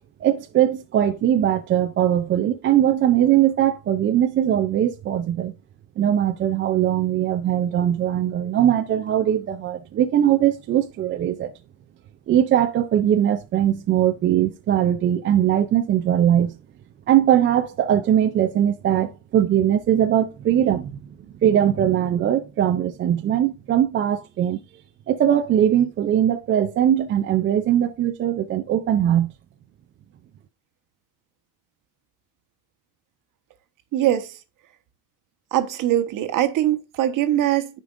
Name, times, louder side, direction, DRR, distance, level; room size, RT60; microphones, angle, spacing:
voice 1, 0.2-5.5 6.0-11.5 12.3-16.6 17.1-21.0 21.4-24.6 25.1-29.3, right 10 dB, 30° right, 0.4 m, -20 dB
voice 2, 33.9-34.4 35.5-37.8, right 12 dB, 45° right, 1.2 m, -22 dB
13.0 x 5.2 x 2.4 m
cardioid pair, 145°, 45 cm